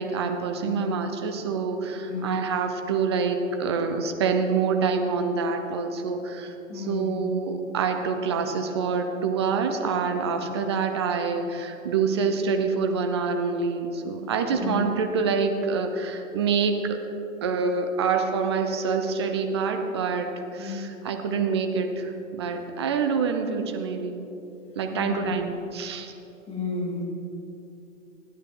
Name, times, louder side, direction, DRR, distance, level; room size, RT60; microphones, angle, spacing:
voice 1, 0.0-17.0 17.4-24.3 24.8-26.1, right 5 dB, 20° right, 5 dB, 0.5 m, -26 dB
voice 2, 0.6-0.9 2.0-2.4 6.7-7.2 14.5-14.8 20.6-20.8 24.9-25.3 26.5-27.0, left 5 dB, 15° left, -6 dB, 2.6 m, -32 dB
12.0 x 9.3 x 3.6 m, 2.9 s
figure-of-eight pair, 125°, 40 cm